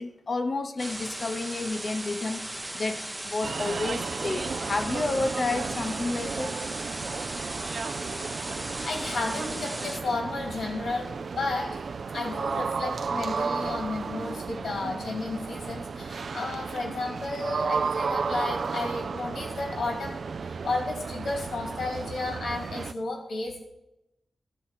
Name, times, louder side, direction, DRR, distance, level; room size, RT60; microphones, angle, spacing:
voice 1, 0.0-6.6, left 3 dB, 40° left, 9 dB, 0.7 m, -31 dB
sound 1, 0.8-10.0, right 1 dB, 10° right, 0.6 m, -37 dB
sound 2, 3.4-22.9, right 5 dB, 55° right, 0.3 m, -33 dB
voice 2, 8.8-11.1 11.3-11.8 12.1-23.6, left 3 dB, 75° left, 2 dB, 2.5 m, -33 dB
12.0 x 4.3 x 7.3 m, 0.88 s
wide cardioid pair, 165°, 0 cm